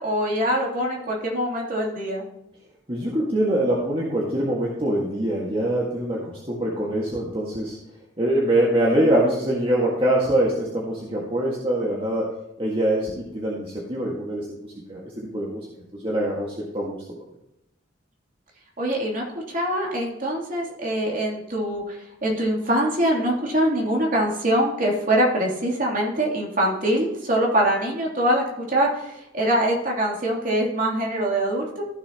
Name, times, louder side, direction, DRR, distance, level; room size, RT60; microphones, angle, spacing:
voice 1, 0.0-2.2 18.8-31.8, right 1 dB, 45° right, -2 dB, 3.0 m, -23 dB
voice 2, 2.9-7.8 8.2-12.3 12.6-15.7 15.9-17.0, right 1 dB, 30° right, -4 dB, 1.8 m, -24 dB
15.0 x 7.0 x 2.9 m, 0.89 s
head